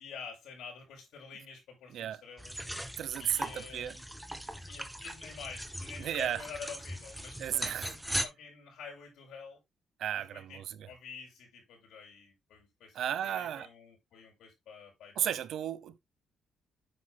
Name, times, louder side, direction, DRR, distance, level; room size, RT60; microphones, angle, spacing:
voice 1, 0.0-2.7 3.2-4.1 4.7-9.6 10.2-15.4, left 5 dB, 80° left, 6.8 m, -48 dB
sound 1, 2.4-8.3, equal, 5° right, 1.4 m, -39 dB
voice 2, 3.0-4.0 6.0-6.4 7.4-7.9 10.0-10.8 12.9-13.7 15.2-16.0, right 10 dB, 75° right, 0.9 m, -34 dB
10.0 x 7.6 x 2.2 m
cardioid pair, 90°, 0 cm